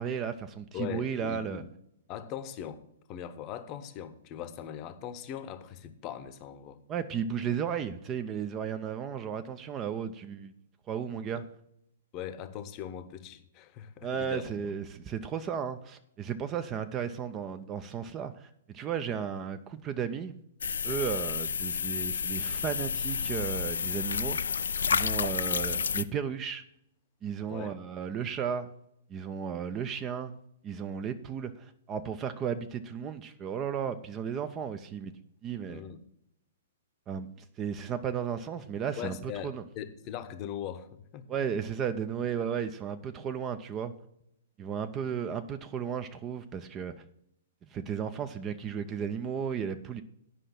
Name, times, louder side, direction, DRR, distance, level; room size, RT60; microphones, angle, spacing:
voice 1, 0.0-1.6 6.9-10.5 10.9-11.4 14.0-20.3 20.8-24.5 24.9-26.6 27.2-28.7 29.1-30.4 30.6-35.1 35.4-35.8 37.1-37.3 37.6-39.6 41.3-43.9 44.6-46.9 47.7-50.0, right 7 dB, 20° right, 0.5 m, -34 dB
voice 2, 0.7-1.7 2.1-2.8 3.1-6.8 7.4-7.6 11.3-11.5 12.1-14.7 27.5-27.8 35.7-36.0 39.0-41.3, left 9 dB, 30° left, 0.8 m, -40 dB
sound 1, 20.6-26.0, left 6 dB, 65° left, 0.3 m, -30 dB
9.8 x 5.4 x 5.8 m
figure-of-eight pair, 115°, 0 cm